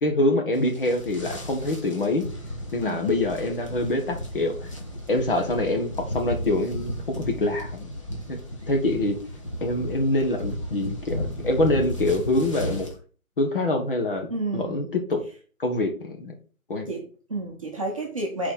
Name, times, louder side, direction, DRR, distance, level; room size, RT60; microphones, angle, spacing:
voice 1, 0.0-2.2 2.7-4.7 5.1-7.9 8.3-8.4 8.7-9.2 9.6-12.9 13.4-14.3 14.5-14.8 15.1-15.2 15.6-16.3 16.7-16.9, left 2 dB, 40° left, 3 dB, 1.4 m, -25 dB
sound 1, 0.6-12.9, equal, 20° left, 0.9 m, -34 dB
voice 2, 2.8-3.1 14.3-14.9 16.9-18.5, right 2 dB, 25° right, -1 dB, 1.0 m, -31 dB
5.4 x 4.3 x 6.2 m, 0.39 s
hypercardioid pair, 170°, 42 cm